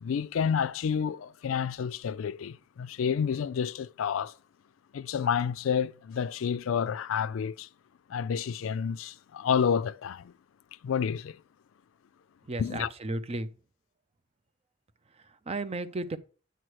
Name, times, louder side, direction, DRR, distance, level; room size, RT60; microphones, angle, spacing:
voice 1, 0.0-4.3 4.9-7.7 8.1-10.3 10.8-11.4 12.6-12.9, left 7 dB, 75° left, 0.4 m, -29 dB
voice 2, 12.4-13.5 15.1-16.2, right 2 dB, 30° right, 0.5 m, -34 dB
9.1 x 3.1 x 6.2 m
head